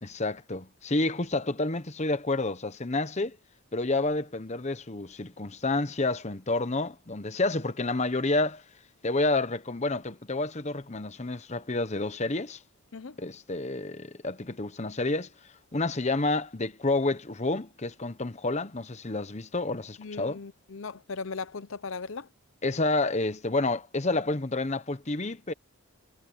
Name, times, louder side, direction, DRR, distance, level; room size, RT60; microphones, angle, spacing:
voice 1, 0.0-3.4 3.7-8.6 9.0-12.6 13.2-15.3 15.7-20.4 22.6-25.5, left 2 dB, 30° left, 1.0 m, -29 dB
voice 2, 20.0-22.3, left 4 dB, 65° left, 0.7 m, -38 dB
head